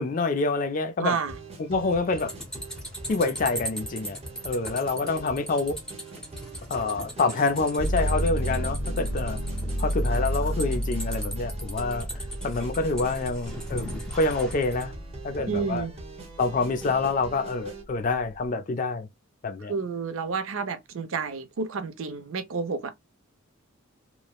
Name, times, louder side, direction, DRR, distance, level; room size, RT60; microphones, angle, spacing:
voice 1, 0.0-1.2 1.6-2.3 3.1-4.2 4.4-5.8 6.7-9.4 9.8-12.1 12.4-13.9 14.1-14.9 15.2-15.9 16.4-19.1 19.4-19.7, left 3 dB, 40° left, 0.4 m, -27 dB
voice 2, 1.0-1.4 15.5-15.9 19.7-22.9, right 5 dB, 65° right, 0.5 m, -30 dB
sound 1, 1.2-17.8, right 2 dB, 30° right, 0.7 m, -43 dB
sound 2, 2.2-14.9, equal, 5° left, 0.7 m, -39 dB
sound 3, 7.8-15.6 16.1-16.9, equal, 65° left, 0.9 m, -31 dB
3.1 x 2.0 x 2.2 m
head